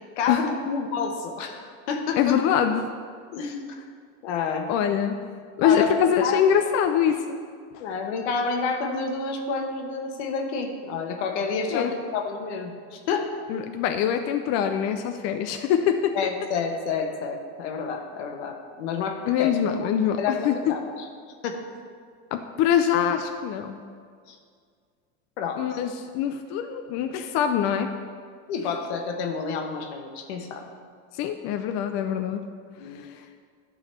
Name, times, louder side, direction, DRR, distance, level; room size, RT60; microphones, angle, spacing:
voice 1, 0.0-2.4 3.3-3.8 4.2-4.7 5.6-5.9 6.2-6.4 7.8-13.3 16.1-19.5 19.8-21.1 21.4-21.6 24.3-24.4 25.4-25.6 28.5-30.6 32.8-33.0, left 5 dB, 85° left, 4 dB, 1.3 m, -29 dB
voice 2, 2.2-2.8 4.7-5.2 5.6-7.4 7.7-7.8 11.7-11.9 13.5-16.2 19.3-20.5 22.3-23.8 25.6-27.9 31.1-32.5 32.9-33.2, left 9 dB, 50° left, 6 dB, 0.6 m, -24 dB
11.0 x 4.0 x 6.6 m, 2.1 s
supercardioid pair, 130°, 33 cm